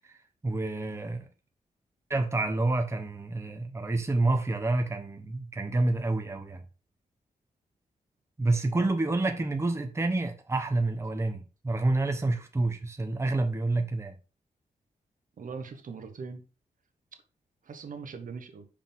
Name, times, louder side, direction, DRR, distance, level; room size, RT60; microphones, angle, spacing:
voice 1, 0.4-1.3 2.1-6.6 8.4-14.1, right 2 dB, 20° right, 0.9 m, -28 dB
voice 2, 15.4-16.4 17.6-18.7, right 5 dB, 65° right, 1.1 m, -41 dB
5.6 x 5.1 x 3.5 m
cardioid pair, 80°, 15 cm